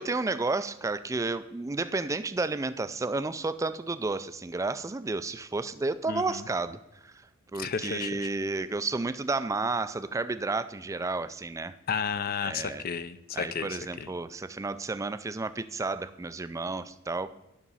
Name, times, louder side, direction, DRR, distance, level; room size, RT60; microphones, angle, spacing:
voice 1, 0.0-7.1 7.5-11.7 12.4-12.8 13.4-17.3, right 3 dB, 15° right, 13 dB, 0.3 m, -31 dB
voice 2, 6.1-6.4 7.6-8.2 11.9-14.1, left 6 dB, 45° left, 13 dB, 0.5 m, -33 dB
9.9 x 6.0 x 5.5 m, 0.93 s
head